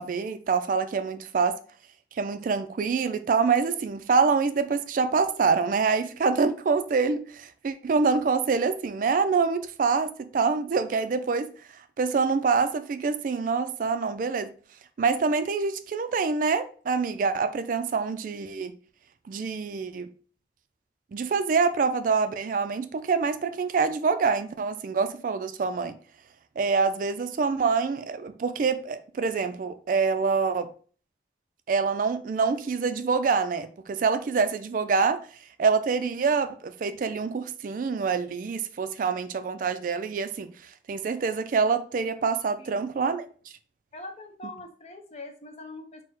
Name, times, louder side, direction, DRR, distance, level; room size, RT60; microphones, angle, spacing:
voice 1, 0.0-1.6 2.2-11.5 12.0-14.5 15.0-18.7 19.3-20.1 21.1-25.9 26.6-30.7 31.7-35.2 35.6-40.5 40.9-43.3, right 5 dB, 45° right, 0.3 m, -26 dB
voice 2, 42.6-42.9 43.9-46.0, left 2 dB, 35° left, 0.6 m, -43 dB
4.4 x 2.1 x 4.4 m
head